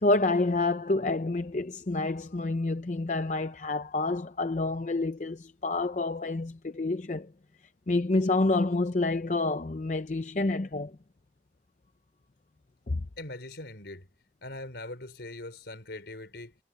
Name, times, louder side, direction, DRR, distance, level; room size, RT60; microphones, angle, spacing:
voice 1, 0.0-7.3 7.9-10.9 12.9-13.0, left 2 dB, 40° left, 0.6 m, -28 dB
voice 2, 13.2-14.1 14.4-16.6, left 2 dB, 70° left, 4.0 m, -41 dB
head